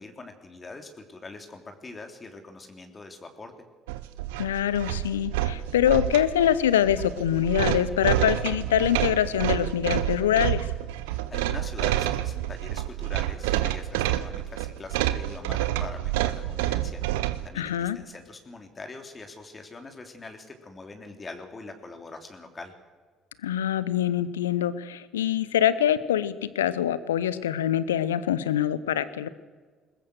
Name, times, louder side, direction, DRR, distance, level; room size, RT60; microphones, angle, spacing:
voice 1, 0.0-3.5 11.0-22.7, left 3 dB, 30° left, 5 dB, 3.0 m, -43 dB
Strange sound. (fluorescent lamp), 3.9-17.5, right 14 dB, 75° right, 0.8 m, -28 dB
voice 2, 4.4-10.7 17.6-18.0 23.4-29.3, left 10 dB, 80° left, 16 dB, 0.8 m, -24 dB
21.0 x 21.0 x 6.5 m, 1.5 s
figure-of-eight pair, 50°, 0 cm